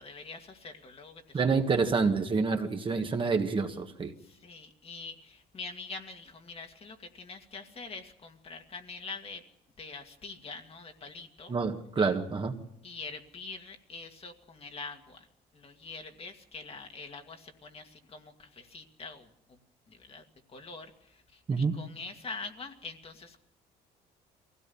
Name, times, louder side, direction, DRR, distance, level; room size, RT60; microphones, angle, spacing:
voice 1, 0.0-1.4 4.2-9.4 9.8-11.6 12.8-15.3 15.5-19.6 19.9-23.4, left 4 dB, 35° left, 5 dB, 2.1 m, -44 dB
voice 2, 1.3-4.1 11.5-12.5 21.5-21.7, right 4 dB, 30° right, 4 dB, 1.8 m, -27 dB
23.0 x 16.5 x 7.1 m, 0.79 s
cardioid pair, 110°, 17 cm